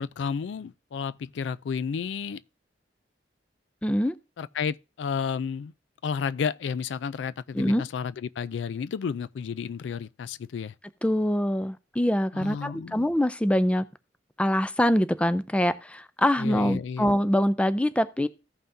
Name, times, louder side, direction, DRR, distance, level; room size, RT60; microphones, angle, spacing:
voice 1, 0.0-2.4 4.4-5.7 6.0-10.7 12.3-13.1 16.4-17.1, left 6 dB, 80° left, 0.4 m, -32 dB
voice 2, 3.8-4.1 7.5-7.8 11.0-13.8 14.4-18.3, equal, 5° left, 0.4 m, -24 dB
15.0 x 5.6 x 2.7 m
head